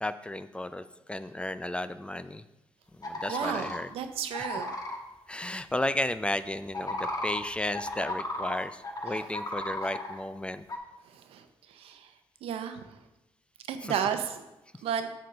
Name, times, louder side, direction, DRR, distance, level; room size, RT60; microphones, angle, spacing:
voice 1, 0.0-2.4 3.0-3.9 4.4-4.5 5.3-10.6 13.8-13.9, left 1 dB, 10° left, 12 dB, 0.3 m, -33 dB
sound 1, 3.0-3.8 4.3-5.0 6.7-8.6 8.8-10.2 10.7-10.8, left 1 dB, 40° left, 1.2 m, -34 dB
voice 2, 3.3-4.7 9.0-9.3 11.0-12.1 12.4-13.0 13.7-14.4 14.8-15.1, right 8 dB, 90° right, 8 dB, 0.7 m, -33 dB
6.5 x 4.0 x 6.4 m, 0.94 s
cardioid pair, 85°, 10 cm